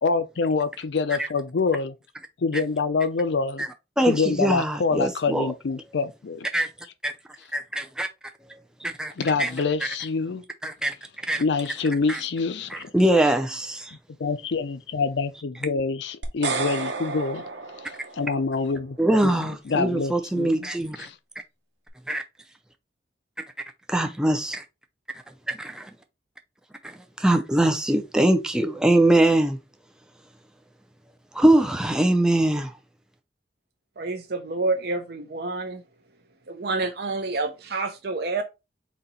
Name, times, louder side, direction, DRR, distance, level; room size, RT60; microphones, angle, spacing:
voice 1, 0.0-1.9 2.4-3.7 4.1-6.5 9.2-10.4 11.4-12.9 14.2-17.4 18.2-19.0 19.2-19.3 19.7-20.7 21.0-21.1, left 4 dB, 75° left, 0.5 m, -26 dB
voice 2, 4.0-5.5 6.5-6.7 7.0-7.1 7.5-8.1 8.5-9.1 9.4-9.5 10.6-10.9 11.3-11.4 12.1-12.2 12.7-14.0 19.0-21.1 22.1-22.2 23.9-24.6 25.5-25.9 26.8-29.6 31.3-32.8, right 1 dB, 5° right, 0.4 m, -22 dB
sound 1, 16.2-18.5, right 4 dB, 75° right, 0.9 m, -31 dB
voice 3, 34.0-35.8 36.5-38.4, right 3 dB, 60° right, 0.5 m, -28 dB
4.1 x 2.8 x 4.0 m
head